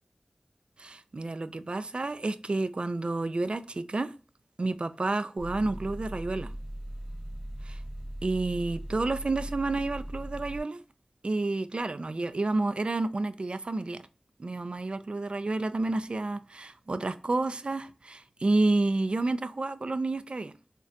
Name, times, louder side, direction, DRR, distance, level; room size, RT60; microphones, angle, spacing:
voice 1, 0.8-4.1 4.6-6.5 7.6-7.8 8.2-10.8 11.2-14.1 14.4-20.5, right 2 dB, 50° right, 0.3 m, -30 dB
sound 1, 5.4-10.6, right 1 dB, 20° right, 1.0 m, -39 dB
3.9 x 2.2 x 2.4 m
wide cardioid pair, 55°, 2 cm